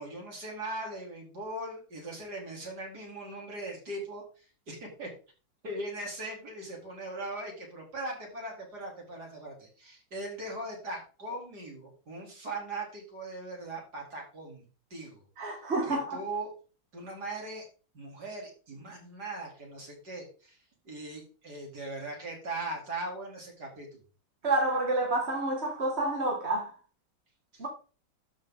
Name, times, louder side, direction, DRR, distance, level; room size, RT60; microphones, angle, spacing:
voice 1, 0.0-5.1 5.6-14.6 14.9-15.2 15.8-16.5 16.9-17.6 17.9-20.6 20.9-24.0 27.5-27.6, right 2 dB, 50° right, 4.1 m, -39 dB
voice 2, 15.4-16.2 24.4-26.7 27.6-27.7, right 2 dB, 35° right, 1.7 m, -29 dB
12.5 x 5.2 x 3.9 m
omnidirectional pair, 2.2 m